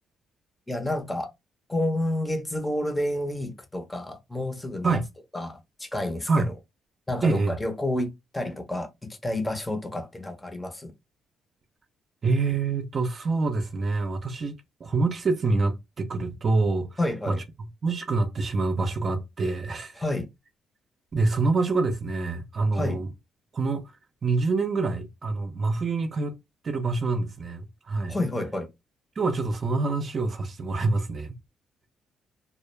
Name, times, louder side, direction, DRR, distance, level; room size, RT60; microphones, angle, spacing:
voice 1, 0.7-1.3 1.7-5.0 5.3-6.5 7.1-10.9 17.0-17.4 20.0-20.3 22.7-23.0 28.1-28.7, left 1 dB, 15° left, 0.6 m, -30 dB
voice 2, 7.2-7.6 12.2-14.5 14.8-17.0 17.3-20.0 21.1-23.1 23.5-23.9 24.2-26.4 26.6-28.2 29.2-31.4, right 3 dB, 45° right, 0.5 m, -26 dB
2.2 x 2.0 x 3.0 m
cardioid pair, 90°, 0 cm